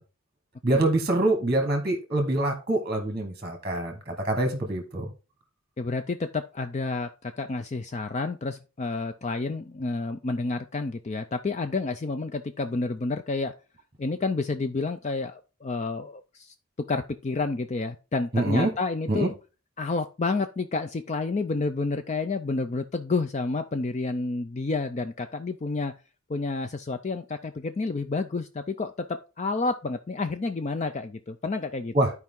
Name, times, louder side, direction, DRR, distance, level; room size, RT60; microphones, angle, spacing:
voice 1, 0.6-5.1 18.3-18.7 19.1-19.3 31.9-32.1, right 1 dB, 25° right, 4 dB, 1.2 m, -25 dB
voice 2, 5.8-13.5 14.0-16.5 16.9-19.3 19.8-25.9 26.3-29.1 29.4-31.9, left 3 dB, 30° left, 9 dB, 0.4 m, -30 dB
12.0 x 4.7 x 3.7 m, 0.33 s
head